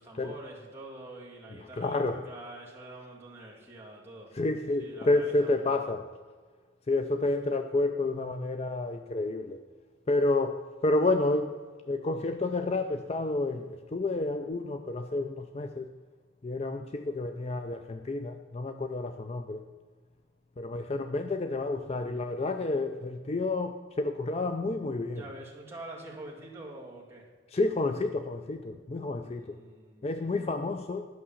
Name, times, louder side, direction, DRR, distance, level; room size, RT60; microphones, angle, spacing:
voice 1, 0.0-4.3 4.8-5.8 25.1-27.3 29.2-30.1, right 1 dB, 10° right, -4 dB, 2.2 m, -46 dB
voice 2, 1.8-2.3 4.3-6.1 6.9-9.6 10.1-11.6 11.9-15.9 16.4-19.6 20.6-25.2 27.5-29.6 30.0-31.1, left 2 dB, 30° left, 7 dB, 0.4 m, -30 dB
11.0 x 6.0 x 7.2 m, 1.5 s
head